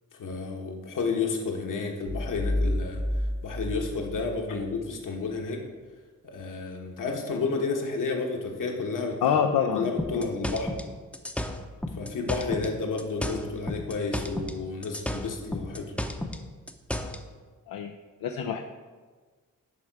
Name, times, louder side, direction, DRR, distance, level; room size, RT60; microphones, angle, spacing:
voice 1, 0.2-3.0 3.4-5.6 6.2-9.4 9.7-10.7 11.9-15.9, left 4 dB, 65° left, 2 dB, 1.3 m, -31 dB
sound 1, 2.1-4.9, left 1 dB, 40° left, 0.9 m, -30 dB
voice 2, 9.2-10.2 17.7-17.9 18.2-18.6, left 7 dB, 85° left, 5 dB, 0.5 m, -26 dB
sound 2, 10.0-12.7 13.0-14.6 14.8-17.2, left 1 dB, 5° left, 0.7 m, -32 dB
10.5 x 3.6 x 4.7 m, 1.4 s
cardioid pair, 60°, 33 cm